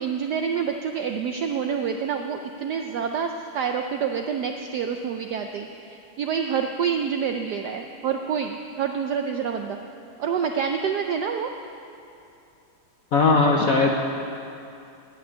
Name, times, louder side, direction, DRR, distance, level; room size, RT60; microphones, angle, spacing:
voice 1, 0.0-9.8 10.2-11.5, right 7 dB, 75° right, 5 dB, 0.9 m, -27 dB
voice 2, 13.1-13.9, left 3 dB, 65° left, 1 dB, 0.9 m, -18 dB
10.5 x 8.8 x 9.3 m, 2.6 s
omnidirectional pair, 2.4 m